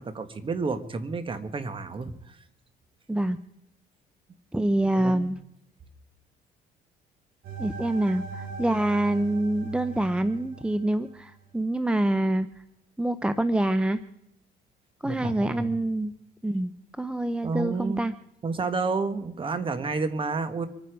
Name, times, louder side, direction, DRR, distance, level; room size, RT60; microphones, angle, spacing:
voice 1, 0.0-2.4 4.9-5.3 15.0-15.7 17.4-18.1 18.4-20.7, right 4 dB, 30° right, 10 dB, 1.6 m, -30 dB
voice 2, 3.1-3.4 4.5-5.4 7.6-12.5 13.0-14.0 15.0-16.1 16.4-16.7 17.0-18.1, right 1 dB, 5° right, 12 dB, 0.6 m, -26 dB
sound 1, 7.4-11.5, right 5 dB, 65° right, 4.1 m, -40 dB
25.0 x 9.5 x 5.1 m, 0.81 s
cardioid pair, 110°, 17 cm